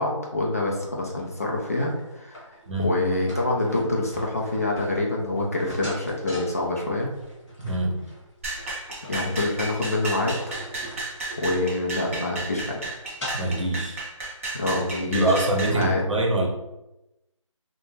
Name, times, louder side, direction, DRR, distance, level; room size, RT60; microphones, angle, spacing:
voice 1, 0.0-2.4 2.8-7.1 9.1-10.4 11.4-12.8 14.5-15.4 15.7-16.0, left 2 dB, 30° left, -2 dB, 0.3 m, -26 dB
sound 1, 0.8-13.7, equal, 5° left, 0.8 m, -41 dB
voice 2, 7.6-8.0 13.3-14.0 15.1-16.5, right 1 dB, 65° right, 0 dB, 0.8 m, -24 dB
sound 2, 8.4-15.8, right 2 dB, 25° right, 0.5 m, -33 dB
2.4 x 2.1 x 3.1 m, 0.93 s
figure-of-eight pair, 160°, 17 cm